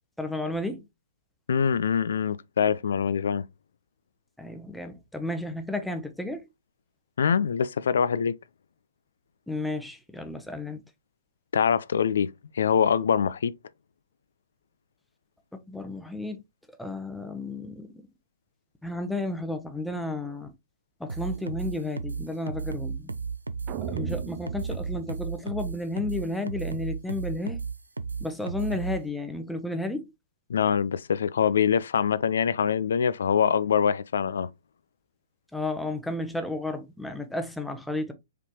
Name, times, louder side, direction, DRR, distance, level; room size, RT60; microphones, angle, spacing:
voice 1, 0.2-0.8 4.4-6.4 9.5-10.8 15.7-16.4 16.8-17.9 18.8-20.5 21.0-23.1 23.9-27.6 28.2-30.0 35.5-38.1, left 2 dB, ahead, 0.8 m, -32 dB
voice 2, 1.5-3.4 7.2-8.3 11.5-13.5 30.5-34.5, left 7 dB, 60° left, 0.3 m, -24 dB
sound 1, 21.1-29.0, right 5 dB, 80° right, 0.5 m, -33 dB
sound 2, 23.7-26.0, right 8 dB, 30° right, 0.5 m, -37 dB
4.8 x 3.3 x 3.0 m
figure-of-eight pair, 115°, 0 cm